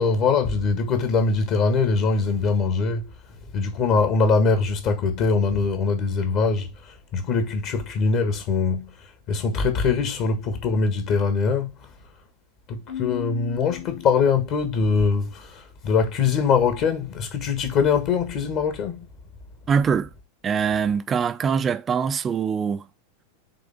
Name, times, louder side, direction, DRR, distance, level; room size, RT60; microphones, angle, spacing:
voice 1, 0.0-3.1 3.5-11.7 12.7-19.1, left 5 dB, 40° left, 1.6 m, -22 dB
Keyboard (musical), 12.9-14.7, left 11 dB, 65° left, 1.9 m, -36 dB
voice 2, 19.7-20.1 20.4-22.8, right 6 dB, 20° right, 0.6 m, -23 dB
8.4 x 3.5 x 3.5 m
figure-of-eight pair, 90°, 0 cm